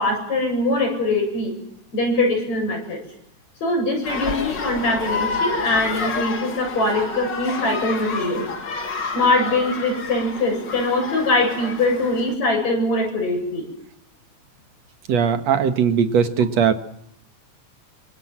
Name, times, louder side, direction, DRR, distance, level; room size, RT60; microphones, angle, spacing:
voice 1, 0.0-1.5 1.9-3.0 3.6-8.5 9.1-13.6, left 2 dB, 65° left, 3 dB, 9.5 m, -22 dB
sound 1, 4.0-12.3, left 4 dB, 40° left, 2.7 m, -29 dB
voice 2, 15.1-16.7, right 7 dB, 65° right, 9 dB, 2.6 m, -19 dB
26.0 x 25.5 x 7.5 m, 0.74 s
omnidirectional pair, 3.3 m